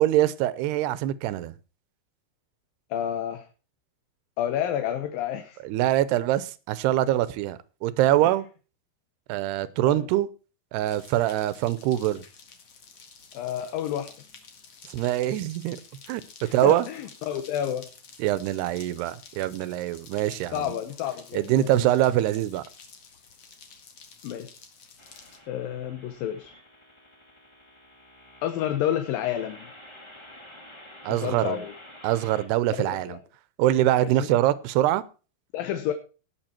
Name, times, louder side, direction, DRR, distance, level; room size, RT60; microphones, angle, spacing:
voice 1, 0.0-1.5 5.6-8.5 9.3-10.3 10.7-12.2 14.9-15.8 16.1-16.2 16.5-16.9 18.2-20.7 21.3-22.6 31.0-31.6 32.0-33.2 33.6-35.0, right 13 dB, 85° right, 2.9 m, -24 dB
voice 2, 2.9-3.5 4.4-5.6 9.9-10.1 13.3-14.1 16.4-17.9 20.5-21.9 24.2-24.5 25.5-26.5 28.4-29.7 31.1-31.7 32.8-33.2 34.0-34.3 35.5-35.9, left 10 dB, 70° left, 2.5 m, -30 dB
sound 1, 10.8-25.4, left 5 dB, 45° left, 2.4 m, -50 dB
sound 2, 25.0-32.5, left 1 dB, 15° left, 0.8 m, -49 dB
18.0 x 7.2 x 4.4 m
omnidirectional pair, 4.6 m